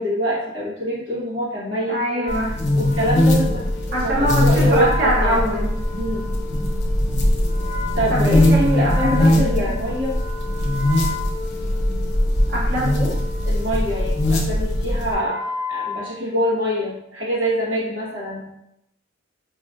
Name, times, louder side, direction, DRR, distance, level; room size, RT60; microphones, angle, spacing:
voice 1, 0.0-2.0 2.7-5.4 6.0-6.3 7.9-10.2 13.4-15.4 15.7-18.5, equal, 80° right, -6 dB, 1.2 m, -25 dB
voice 2, 1.9-2.5 3.9-5.7 8.1-9.7 12.5-13.1, right 1 dB, 50° right, -5 dB, 0.9 m, -23 dB
Wind instrument woodwind instrument, 2.1-16.8, left 3 dB, 40° left, 0.5 m, -34 dB
sound 1, 2.3-15.1, left 1 dB, 55° left, 0.8 m, -21 dB
4.9 x 2.4 x 2.5 m, 0.84 s
head